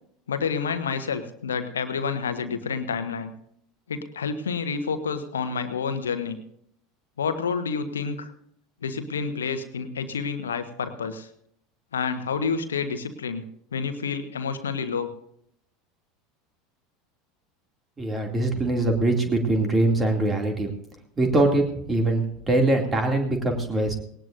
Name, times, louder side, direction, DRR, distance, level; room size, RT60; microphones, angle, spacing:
voice 1, 0.3-3.3 3.9-6.4 7.2-8.3 8.8-11.3 11.9-13.4 13.7-15.1, left 5 dB, 70° left, 10 dB, 1.3 m, -29 dB
voice 2, 18.0-20.7 21.2-23.9, right 2 dB, 20° right, 3 dB, 2.6 m, -23 dB
19.5 x 18.5 x 2.6 m, 0.71 s
figure-of-eight pair, 75°, 0 cm